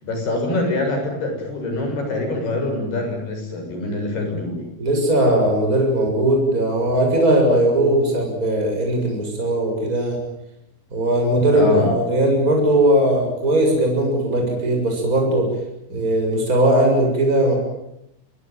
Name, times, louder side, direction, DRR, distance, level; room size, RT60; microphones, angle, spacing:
voice 1, 0.0-4.7 11.5-11.9, left 2 dB, 80° left, 4 dB, 9.0 m, -24 dB
voice 2, 4.8-10.2 10.9-15.5 15.9-17.6, right 1 dB, 20° right, 1 dB, 7.3 m, -19 dB
25.0 x 23.0 x 9.3 m, 0.81 s
omnidirectional pair, 4.5 m